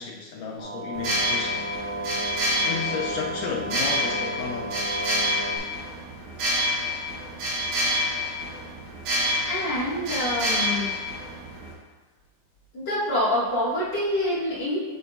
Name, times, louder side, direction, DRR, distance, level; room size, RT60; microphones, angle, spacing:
voice 1, 0.0-1.7 2.7-4.9, left 6 dB, 80° left, 0 dB, 2.0 m, -33 dB
sound 1, 0.6-5.6, right 1 dB, 25° right, 1.8 m, -33 dB
sound 2, 0.9-11.7, left 1 dB, 65° right, 2.5 m, -28 dB
voice 2, 9.4-10.9 12.7-14.8, left 1 dB, 35° left, -10 dB, 2.4 m, -26 dB
8.4 x 6.0 x 2.6 m, 1.2 s
omnidirectional pair, 4.2 m